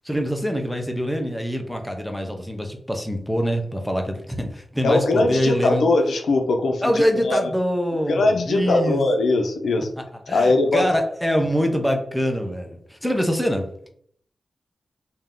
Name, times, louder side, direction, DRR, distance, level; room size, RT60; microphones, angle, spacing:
voice 1, 0.0-5.9 6.8-9.0 10.3-13.7, equal, 5° left, 3 dB, 0.7 m, -24 dB
voice 2, 4.8-7.5 8.1-9.9 10.3-10.9, left 2 dB, 90° left, 4 dB, 0.5 m, -20 dB
3.5 x 2.8 x 3.7 m, 0.63 s
cardioid pair, 70°, 0 cm